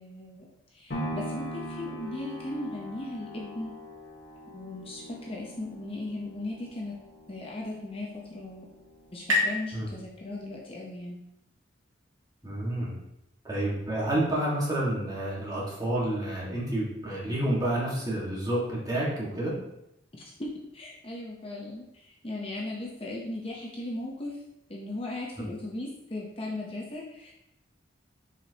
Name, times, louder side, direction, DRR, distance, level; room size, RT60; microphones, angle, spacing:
voice 1, 0.0-3.7 4.5-6.9 7.3-8.7 9.1-11.2 20.1-24.4 24.7-27.3, left 2 dB, 30° left, -3 dB, 0.8 m, -37 dB
sound 1, 0.9-9.0 9.5-9.6, equal, 65° left, 1.3 m, -41 dB
sound 2, 7.8-11.2, left 2 dB, 90° right, 2.1 m, -33 dB
voice 2, 12.4-12.9 13.4-19.5 25.4-25.5, right 1 dB, 20° right, -5 dB, 1.6 m, -29 dB
7.0 x 5.1 x 2.9 m, 0.85 s
head